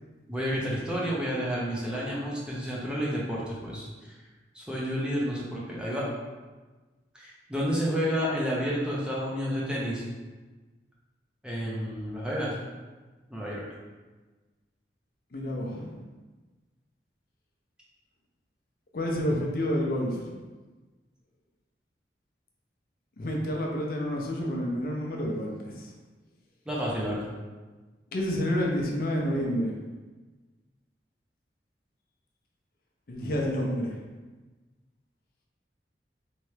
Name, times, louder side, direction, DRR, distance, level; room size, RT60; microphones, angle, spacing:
voice 1, 0.3-3.9 4.5-6.1 7.1-10.0 11.4-12.6 13.3-13.6 26.7-27.3, equal, 5° right, -6 dB, 0.6 m, -30 dB
voice 2, 15.3-16.0 18.9-20.3 23.2-25.9 28.1-29.7 33.1-34.0, equal, 55° left, -1 dB, 0.5 m, -29 dB
3.3 x 3.0 x 3.2 m, 1.3 s
head